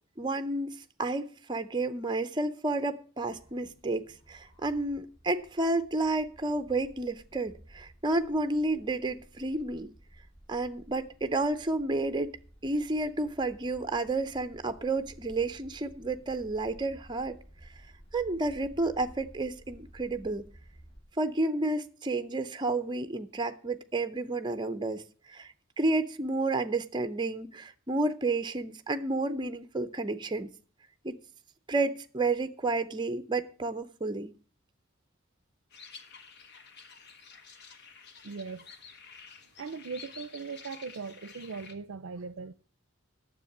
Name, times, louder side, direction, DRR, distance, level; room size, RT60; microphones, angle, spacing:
voice 1, 0.2-9.9 10.5-12.4 12.6-17.4 18.1-20.5 21.2-25.0 25.3-30.5 31.0-31.2 31.7-34.3, right 2 dB, 20° right, 0.6 m, -31 dB
sound 1, 3.2-21.0, right 1 dB, 25° left, 3.0 m, -55 dB
sound 2, 35.7-41.7, left 5 dB, 55° left, 1.2 m, -50 dB
voice 2, 38.2-38.6 39.6-42.5, right 5 dB, 65° right, 0.5 m, -39 dB
9.6 x 7.3 x 7.1 m
head